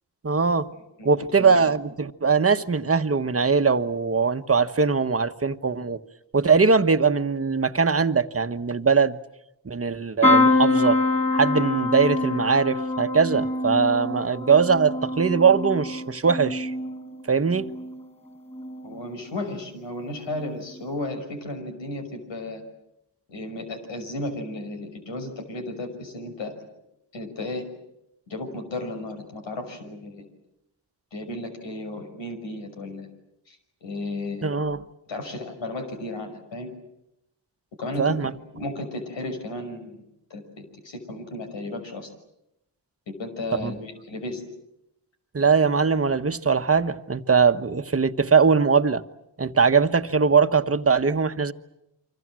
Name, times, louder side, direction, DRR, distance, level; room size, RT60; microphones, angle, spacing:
voice 1, 0.2-0.7 1.0-6.0 6.3-9.2 9.6-11.0 11.3-16.7 17.3-17.7 34.4-34.8 38.0-38.3 43.6-43.7 45.3-49.0 49.4-51.5, right 5 dB, 30° right, 1.3 m, -21 dB
sound 1, 10.2-18.1 18.5-19.0 20.3-20.5 20.7-20.8, left 2 dB, 15° left, 5.1 m, -25 dB
voice 2, 18.8-22.6 23.3-26.5 27.1-27.7 28.3-30.3 31.1-33.1 33.5-33.6 33.8-34.6 35.1-36.7 37.8-40.0 40.3-42.1 43.1-44.5, left 2 dB, 90° left, 6.0 m, -34 dB
28.5 x 25.0 x 7.6 m
cardioid pair, 75°, 44 cm